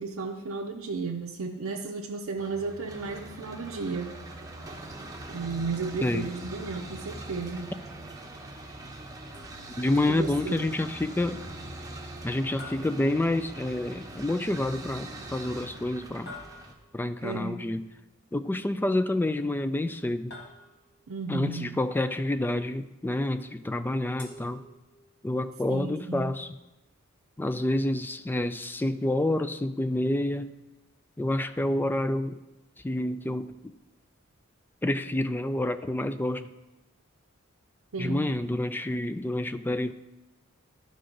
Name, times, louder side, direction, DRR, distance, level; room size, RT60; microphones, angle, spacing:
voice 1, 0.0-4.1 5.3-7.7 10.0-10.7 17.2-17.7 21.1-21.7 25.7-26.4 37.9-38.4, right 4 dB, 80° right, 0 dB, 0.6 m, -34 dB
sound 1, 2.4-16.7, right 2 dB, 15° right, 0.9 m, -42 dB
sound 2, 9.3-10.0 12.6-13.8 16.3-17.1 20.3-21.1 24.2-25.2, left 2 dB, 60° left, 1.9 m, -48 dB
voice 2, 9.8-11.4 12.2-16.3 16.9-17.9 18.3-20.4 21.3-24.6 25.2-26.5 27.4-30.5 31.2-32.4 32.8-33.6 34.8-36.5 38.0-39.9, left 1 dB, 10° left, 11 dB, 0.3 m, -28 dB
12.5 x 5.2 x 3.8 m, 1.0 s
head